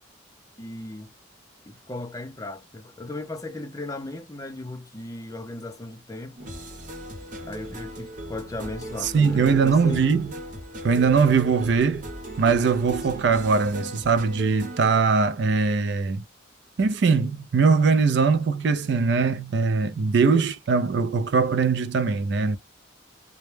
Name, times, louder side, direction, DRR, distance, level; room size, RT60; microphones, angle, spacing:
voice 1, 0.6-1.1 1.7-6.6 7.4-10.1, left 2 dB, 15° left, 0.5 m, -36 dB
sound 1, 6.4-15.0, right 1 dB, 45° right, 0.8 m, -38 dB
voice 2, 9.0-10.3 10.8-12.1 12.4-16.2 16.8-22.6, right 5 dB, 60° right, 0.4 m, -21 dB
2.1 x 2.0 x 3.1 m
head